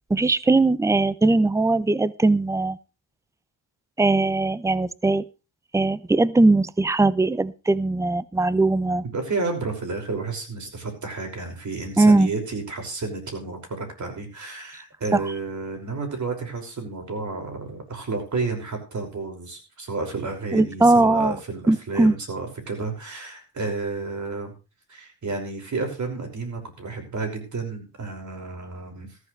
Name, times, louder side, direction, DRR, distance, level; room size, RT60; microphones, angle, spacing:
voice 1, 0.1-2.8 4.0-5.2 5.7-9.0 12.0-12.3 20.5-21.4 21.7-22.1, right 2 dB, 5° right, 18 dB, 0.6 m, -20 dB
voice 2, 9.0-24.5 24.9-29.2, right 3 dB, 45° right, 3 dB, 5.8 m, -31 dB
15.0 x 14.0 x 3.3 m, 0.31 s
cardioid pair, 90°, 41 cm